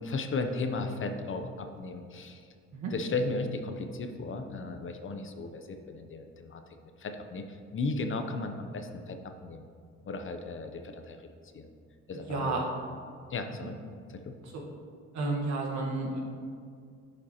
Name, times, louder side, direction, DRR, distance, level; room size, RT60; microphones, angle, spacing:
voice 1, 0.0-2.4 2.9-6.6 7.0-9.6 10.0-11.2 11.5-11.7 12.1-12.7 13.3-13.8 14.2-14.4, left 3 dB, 40° left, 6 dB, 0.6 m, -35 dB
voice 2, 12.1-12.6 14.4-14.6 15.1-16.2, right 3 dB, 65° right, -1 dB, 1.4 m, -32 dB
10.5 x 5.1 x 2.9 m, 2.2 s
cardioid pair, 90°, 30 cm